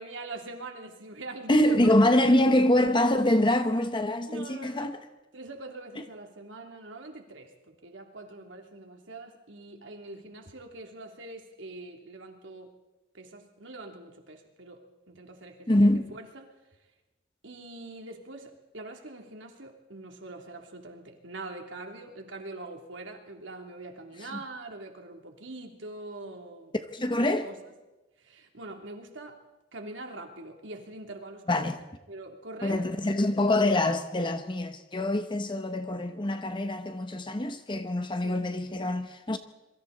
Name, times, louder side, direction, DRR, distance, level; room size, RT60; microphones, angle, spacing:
voice 1, 0.0-2.6 3.5-3.6 4.3-4.9 5.3-12.7 13.1-14.8 15.1-16.5 17.4-26.7 27.4-27.7 28.2-29.4 29.7-33.1 38.2-38.4, right 2 dB, 90° right, 3.2 m, -43 dB
voice 2, 1.5-5.0 15.7-16.0 26.9-27.5 31.5-31.8 32.6-39.4, left 1 dB, 25° left, 0.9 m, -25 dB
26.5 x 23.5 x 4.2 m
head